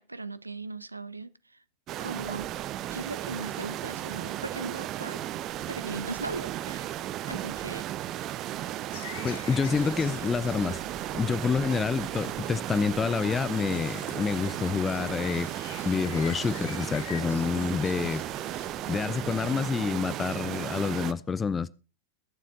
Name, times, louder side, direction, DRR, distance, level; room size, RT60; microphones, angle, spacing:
voice 1, 0.0-1.3 2.0-2.5 2.9-5.2 5.7-6.9 7.2-7.8, right 3 dB, 85° right, 0.7 m, -38 dB
sound 1, 1.9-21.1, right 13 dB, 35° right, 0.9 m, -35 dB
sound 2, 8.9-19.5, left 9 dB, 60° left, 1.4 m, -47 dB
voice 2, 9.2-10.8 11.1-15.5 15.9-18.2 18.9-21.7, left 5 dB, 15° left, 0.5 m, -28 dB
22.0 x 7.5 x 3.9 m
figure-of-eight pair, 90°, 0 cm